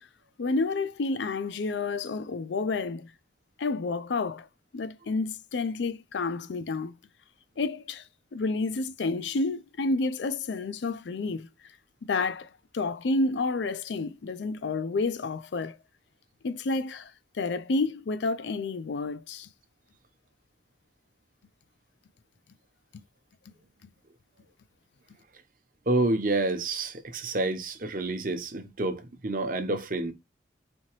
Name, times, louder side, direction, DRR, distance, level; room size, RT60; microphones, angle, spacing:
voice 1, 0.4-3.1 3.6-4.5 4.7-7.0 7.6-8.0 8.3-11.5 12.0-12.5 12.7-15.8 16.4-19.5, left 3 dB, 80° left, 0.4 m, -30 dB
voice 2, 25.9-30.1, right 2 dB, 50° right, 0.8 m, -28 dB
4.4 x 2.8 x 3.0 m
head